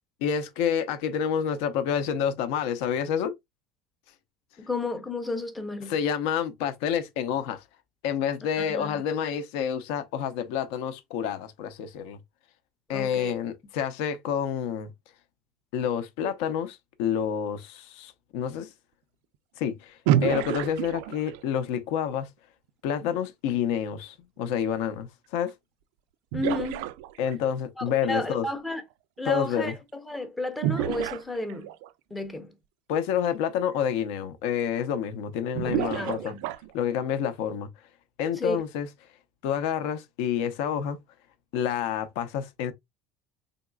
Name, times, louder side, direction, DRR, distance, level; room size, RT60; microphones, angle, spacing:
voice 1, 0.2-3.3 5.9-7.6 8.0-12.2 12.9-14.9 15.7-18.7 19.6-22.3 22.8-25.5 27.2-28.5 29.2-29.8 32.9-36.3 36.7-37.7 38.2-38.9 39.4-41.0 41.5-42.7, left 8 dB, 65° left, 0.6 m, -28 dB
voice 2, 4.6-5.9 8.6-9.0 12.9-13.3 26.3-26.8 27.8-28.8 29.2-31.7 32.1-32.5 35.6-36.5 38.3-38.6, left 2 dB, 5° left, 0.5 m, -32 dB
sound 1, 20.1-21.5 25.5-25.6 26.3-27.5 30.6-31.9 33.2-33.3 33.8-33.9 35.5-36.8, right 12 dB, 65° right, 0.3 m, -28 dB
3.9 x 3.5 x 2.2 m
cardioid pair, 175°, 0 cm